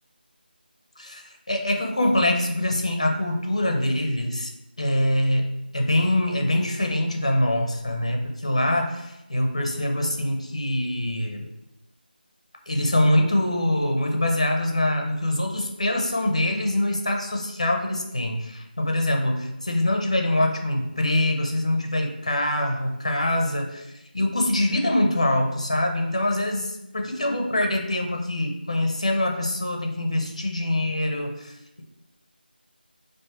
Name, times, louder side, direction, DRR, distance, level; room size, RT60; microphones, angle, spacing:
voice 1, 1.0-4.5 4.8-11.5 12.7-23.9 24.1-31.8, left 1 dB, 35° left, 2 dB, 0.5 m, -24 dB
5.8 x 2.5 x 2.4 m, 0.92 s
figure-of-eight pair, 180°, 6 cm